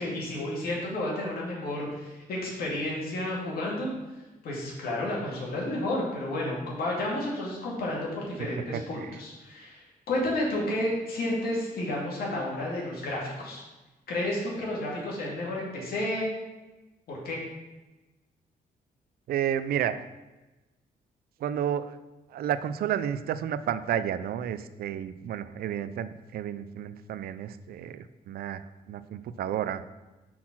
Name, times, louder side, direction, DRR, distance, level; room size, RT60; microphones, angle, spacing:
voice 1, 0.0-3.9 4.4-13.6 14.1-16.3 17.1-17.4, left 1 dB, 75° left, -4 dB, 2.2 m, -31 dB
voice 2, 8.7-9.2 19.3-20.0 21.4-22.0 22.3-29.8, right 9 dB, 75° right, 13 dB, 0.4 m, -31 dB
5.8 x 4.3 x 5.9 m, 1.1 s
wide cardioid pair, 155°, 16 cm